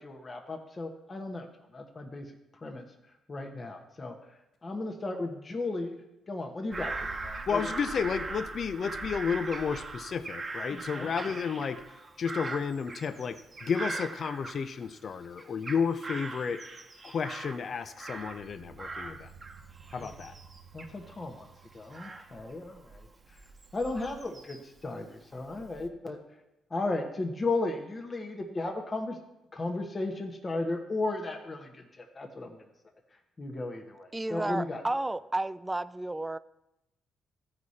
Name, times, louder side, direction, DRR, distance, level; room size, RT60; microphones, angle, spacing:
voice 1, 0.0-1.5 1.7-2.3 2.6-2.8 3.3-4.2 4.6-6.0 6.3-7.7 10.7-11.1 20.0-20.1 20.7-21.5 21.7-23.1 23.7-26.2 26.7-29.2 29.5-32.6 33.4-34.8, left 2 dB, 30° left, 3 dB, 1.1 m, -35 dB
Bird vocalization bird call bird song / Crow, 6.7-15.0 15.4-18.5 18.8-24.8 25.3-25.9, right 3 dB, 35° right, 1.0 m, -41 dB
voice 2, 7.5-11.8 12.2-16.6 17.0-19.3 19.9-20.3, left 6 dB, 50° left, 11 dB, 0.5 m, -32 dB
sound 1, 18.2-23.3, right 6 dB, 80° right, 0.9 m, -55 dB
voice 3, 34.1-36.4, right 2 dB, 15° right, 16 dB, 0.3 m, -32 dB
14.5 x 4.9 x 4.2 m, 0.90 s
cardioid pair, 90°, 0 cm